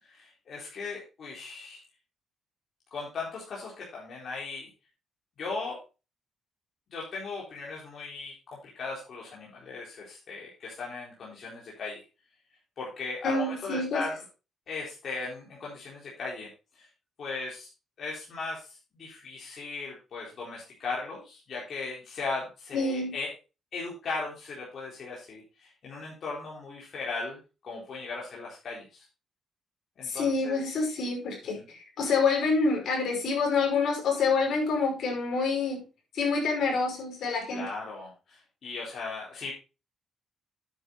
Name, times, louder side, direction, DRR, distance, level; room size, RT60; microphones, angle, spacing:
voice 1, 0.0-1.8 2.9-4.7 5.4-5.8 6.9-8.3 8.6-12.0 12.8-14.2 14.7-16.9 17.2-17.7 18.0-23.3 23.7-29.0 30.0-30.6 31.5-31.6 37.5-39.5, left 3 dB, 55° left, -4 dB, 4.1 m, -37 dB
voice 2, 13.2-14.0 22.7-23.1 30.0-35.8 36.1-37.6, left 4 dB, 70° left, 1 dB, 5.3 m, -27 dB
9.5 x 8.7 x 4.0 m, 0.30 s
cardioid pair, 90°, 0 cm